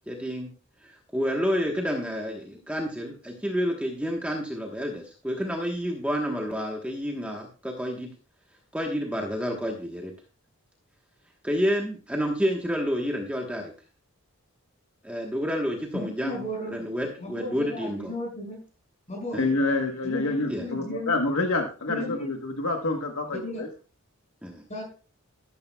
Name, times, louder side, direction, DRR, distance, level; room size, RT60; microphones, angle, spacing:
voice 1, 0.1-0.5 0.8-8.1 8.7-10.1 11.4-13.7 15.0-16.4 16.7-18.1 19.3-19.5 20.5-20.7 24.4-24.6, equal, 5° right, 1 dB, 1.1 m, -29 dB
voice 2, 15.9-16.8 17.2-18.6 19.1-19.4 20.0-21.1 21.9-22.3 23.3-23.6 24.7-24.8, left 1 dB, 30° left, 0 dB, 5.9 m, -35 dB
voice 3, 19.4-23.7, left 2 dB, 70° left, 4 dB, 1.2 m, -27 dB
13.0 x 12.0 x 2.3 m, 0.35 s
head